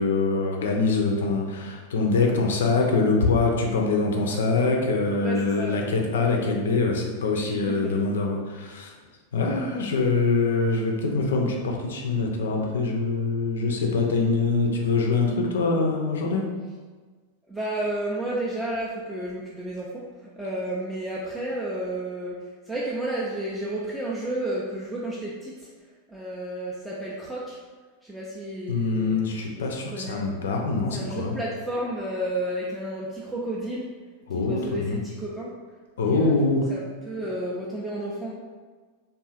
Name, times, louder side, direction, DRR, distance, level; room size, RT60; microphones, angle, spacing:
voice 1, 0.0-8.9 9.3-16.5 28.7-31.3 34.3-35.0 36.0-36.7, left 3 dB, 60° left, 1 dB, 0.4 m, -24 dB
voice 2, 5.2-5.9 7.4-8.1 17.5-22.4 22.7-25.7 26.1-27.6 28.0-29.2 29.9-30.2 30.9-33.9 34.4-35.5 36.0-36.4 36.7-38.3, right 1 dB, 5° right, -6 dB, 0.3 m, -32 dB
2.6 x 2.3 x 2.4 m, 1.4 s
figure-of-eight pair, 90°, 0 cm